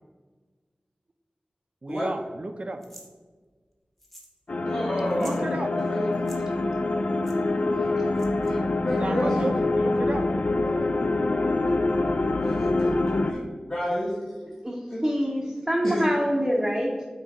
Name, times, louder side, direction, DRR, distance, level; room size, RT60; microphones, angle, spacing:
voice 1, 1.8-2.8 5.1-5.7 9.0-10.3, right 2 dB, 50° right, 8 dB, 0.5 m, -32 dB
sound 1, 2.8-3.1 4.0-4.4 4.6-4.7 5.1-5.4 6.1-6.4 7.2-7.4 8.2-8.5, equal, 10° left, 1.1 m, -47 dB
sound 2, 4.5-13.3, left 2 dB, 65° left, 0.4 m, -25 dB
voice 2, 4.5-6.2 7.7-8.0 8.4-9.6 10.6-10.7 12.4-13.4 13.7-14.2 14.9-15.0 15.8-16.1, equal, 45° left, -10 dB, 1.7 m, -31 dB
voice 3, 14.6-17.0, equal, 10° right, -2 dB, 0.8 m, -26 dB
8.1 x 3.0 x 4.7 m, 1.5 s
wide cardioid pair, 75°, 3 cm